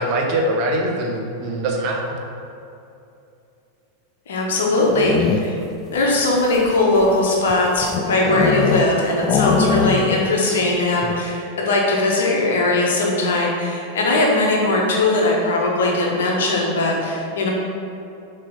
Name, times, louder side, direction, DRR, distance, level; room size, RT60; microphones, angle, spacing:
voice 1, 0.0-2.2, right 1 dB, 40° right, 1 dB, 0.9 m, -22 dB
voice 2, 4.3-5.6 5.9-17.5, left 2 dB, 60° left, -2 dB, 1.3 m, -19 dB
sound 1, 4.7-5.7 6.4-8.9 9.2-10.3 10.6-10.7 11.0-11.3, left 6 dB, 35° left, 0.3 m, -22 dB
6.9 x 3.4 x 5.2 m, 2.7 s
figure-of-eight pair, 90°, 0 cm